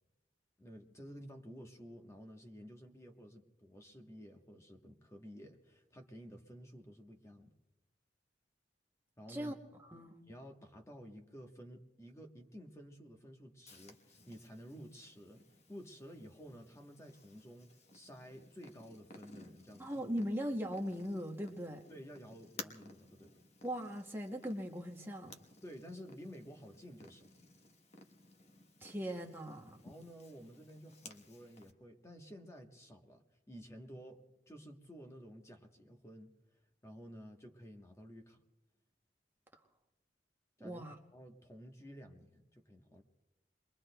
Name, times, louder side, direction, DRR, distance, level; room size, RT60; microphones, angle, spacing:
voice 1, 0.6-7.5 9.2-9.6 10.3-15.4 15.7-20.0 21.9-23.4 25.6-27.3 29.8-36.3 36.8-38.4 40.6-40.8 41.1-43.0, equal, 15° left, 4 dB, 1.1 m, -53 dB
voice 2, 9.3-10.2 19.8-21.8 23.6-25.3 28.8-29.8 40.6-41.0, equal, 15° right, 1 dB, 0.8 m, -39 dB
Purr, 13.7-31.7, left 3 dB, 40° left, 1.1 m, -57 dB
29.0 x 22.0 x 2.2 m, 0.99 s
head